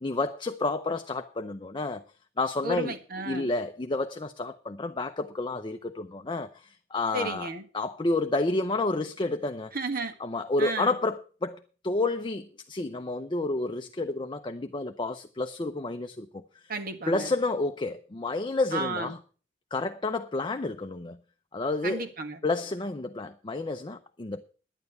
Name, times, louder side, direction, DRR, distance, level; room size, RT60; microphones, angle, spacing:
voice 1, 0.0-2.0 2.4-2.9 3.2-7.5 7.7-9.7 10.2-16.4 17.1-19.2 19.7-21.2 21.5-22.0 22.4-24.4, left 2 dB, 25° left, 0.6 m, -30 dB
voice 2, 2.6-3.5 7.1-7.6 9.7-10.1 10.6-11.0 16.7-17.3 18.7-19.1 21.8-22.4, right 2 dB, 50° right, 1.7 m, -33 dB
11.0 x 9.3 x 6.5 m
head